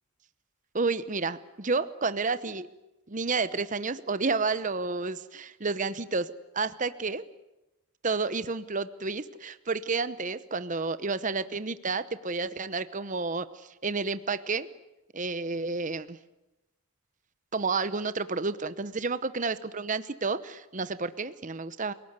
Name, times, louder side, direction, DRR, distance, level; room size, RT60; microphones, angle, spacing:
voice 1, 0.7-2.7 3.1-7.2 8.0-14.7 15.1-16.2 17.5-21.9, right 4 dB, 35° right, 14 dB, 1.0 m, -30 dB
29.0 x 18.5 x 9.7 m, 0.97 s
head